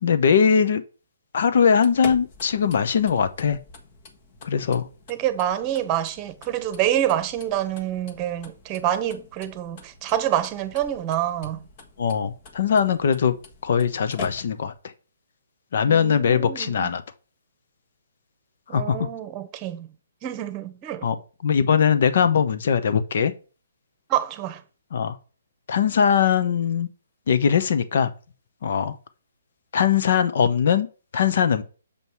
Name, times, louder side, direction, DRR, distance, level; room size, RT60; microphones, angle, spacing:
voice 1, 0.0-0.8 1.3-3.6 4.4-4.9 12.0-13.4 13.6-14.7 15.7-17.0 18.7-19.0 21.0-21.2 21.4-23.3 24.9-25.2 25.7-26.9 27.3-28.1 28.6-29.0 29.7-30.9 31.1-31.6, left 7 dB, 60° left, 0.9 m, -20 dB
sound 1, 1.6-14.8, left 4 dB, 40° left, 1.4 m, -45 dB
voice 2, 5.1-11.6 15.9-16.9 18.7-19.9 20.2-21.1 24.1-24.6, right 11 dB, 25° right, 1.0 m, -27 dB
6.9 x 5.4 x 4.6 m
hypercardioid pair, 140°, 0 cm